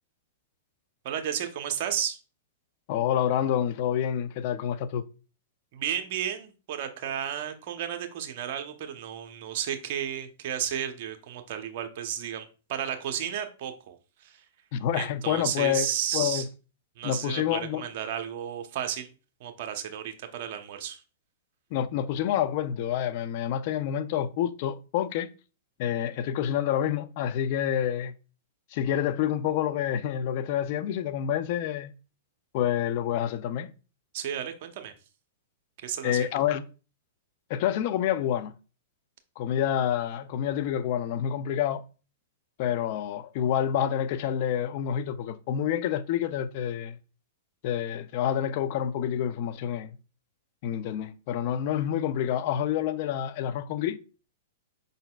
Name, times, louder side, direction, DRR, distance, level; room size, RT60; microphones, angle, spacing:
voice 1, 1.0-2.2 5.7-14.4 14.9-16.5 17.0-19.1 19.4-21.0 34.1-34.9 35.8-36.3, right 9 dB, 55° right, 0.8 m, -33 dB
voice 2, 2.9-5.0 14.7-16.4 17.0-17.8 21.7-25.3 25.8-28.1 28.7-31.9 32.5-33.7 36.0-36.6 37.5-38.5 39.4-41.8 42.6-47.0 47.6-50.0 50.6-54.0, left 10 dB, 50° left, 0.4 m, -28 dB
5.2 x 4.0 x 2.3 m
hypercardioid pair, 130°, 0 cm